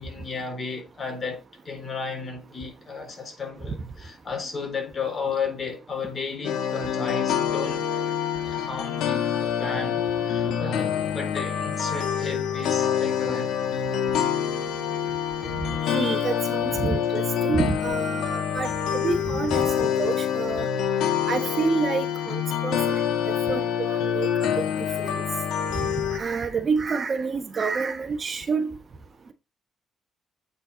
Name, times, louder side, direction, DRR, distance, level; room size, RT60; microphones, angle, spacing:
voice 1, 0.0-8.1 8.3-13.5, left 5 dB, 40° left, 3.9 m, -33 dB
sound 1, 6.4-26.2, left 8 dB, 85° left, 1.5 m, -26 dB
voice 2, 15.7-20.7 21.3-23.0 23.5-24.3 24.6-24.7 25.0-25.2 26.1-28.8, right 4 dB, 40° right, 1.2 m, -28 dB
8.5 x 5.5 x 4.0 m
cardioid pair, 90°, 0 cm